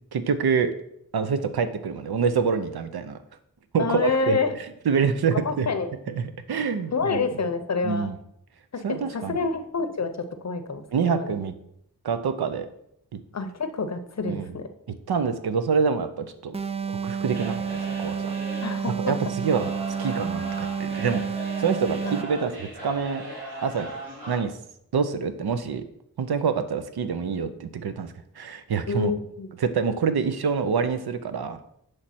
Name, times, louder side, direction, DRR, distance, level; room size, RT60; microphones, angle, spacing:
voice 1, 0.1-0.7 1.1-3.2 3.7-4.4 4.8-5.7 6.1-7.2 7.8-8.2 8.8-9.4 10.9-11.5 12.0-12.7 13.1-13.2 14.2-14.5 15.1-16.5 16.9-18.3 19.0-19.7 20.0-23.2 23.6-23.9 24.3-24.5 24.9-25.8 26.2-29.1 29.6-31.6, right 6 dB, 85° right, 9 dB, 0.6 m, -26 dB
voice 2, 3.8-4.6 5.3-5.9 6.9-8.1 8.7-10.1 10.4-11.3 13.3-14.7 18.6-19.1 22.0-22.1 28.9-29.5, left 4 dB, 45° left, 9 dB, 0.6 m, -28 dB
sound 1, 16.5-22.4, right 6 dB, 20° right, 0.3 m, -30 dB
sound 2, 17.3-24.4, right 1 dB, 70° right, 2.5 m, -38 dB
7.2 x 3.3 x 4.2 m, 0.75 s
wide cardioid pair, 60°, 37 cm